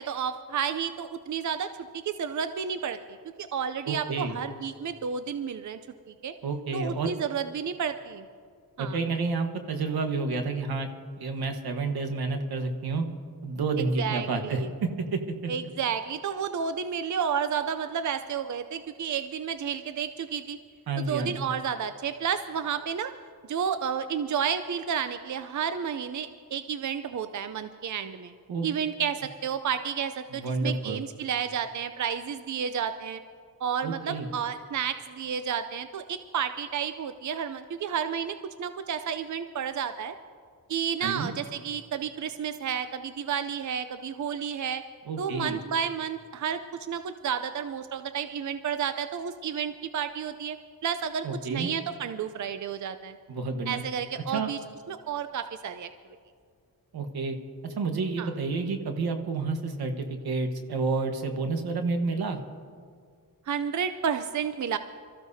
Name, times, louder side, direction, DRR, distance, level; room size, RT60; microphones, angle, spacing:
voice 1, 0.0-3.0 3.4-5.8 6.2-6.3 6.7-8.3 8.8-9.0 14.0-14.7 15.5-20.6 21.0-23.1 23.5-28.3 28.6-33.2 33.6-40.1 40.7-44.8 45.2-50.6 50.8-53.2 53.7-54.6 54.9-55.9 58.2-58.3 63.5-64.8, right 7 dB, 55° right, 10 dB, 0.6 m, -31 dB
voice 2, 3.9-4.4 6.4-7.1 8.8-10.9 11.2-13.0 13.4-15.5 20.9-21.5 28.5-28.7 30.3-31.0 33.8-34.3 41.0-41.3 45.1-45.6 51.2-51.7 53.3-53.8 54.3-54.5 56.9-57.4 57.6-62.4, right 3 dB, 80° right, 5 dB, 1.4 m, -30 dB
24.5 x 14.5 x 2.8 m, 2.1 s
cardioid pair, 75°, 36 cm